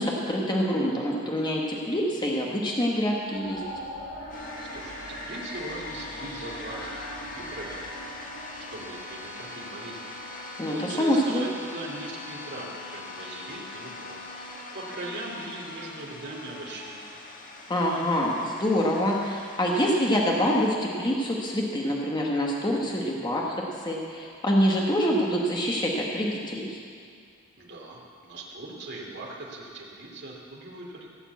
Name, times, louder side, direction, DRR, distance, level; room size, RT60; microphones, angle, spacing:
voice 1, 0.0-3.6 10.6-11.5 17.7-26.8, equal, 20° left, -2 dB, 1.3 m, -26 dB
sound 1, 3.2-10.3, left 1 dB, 85° left, 4.3 m, -40 dB
sound 2, 4.3-20.7, left 2 dB, 40° left, 1.5 m, -42 dB
voice 2, 4.7-7.8 8.7-10.0 10.7-14.2 14.7-17.0 27.6-31.1, right 2 dB, 55° right, -2 dB, 2.6 m, -40 dB
16.0 x 7.2 x 8.2 m, 2.3 s
head